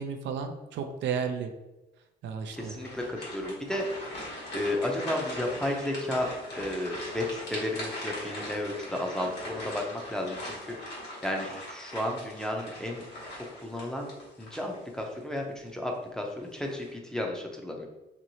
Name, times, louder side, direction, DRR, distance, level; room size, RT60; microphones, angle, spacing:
voice 1, 0.0-1.5 2.2-2.8, right 6 dB, 85° right, 6 dB, 0.4 m, -33 dB
sound 1, 2.5-15.2 15.6-15.8 16.4-16.9, left 1 dB, 65° left, 1.1 m, -40 dB
voice 2, 2.5-3.8 4.5-6.3 6.5-13.0 13.5-14.1 14.4-17.9, left 1 dB, 5° left, 1 dB, 0.5 m, -33 dB
3.0 x 2.9 x 2.7 m, 1.0 s
cardioid pair, 110°, 18 cm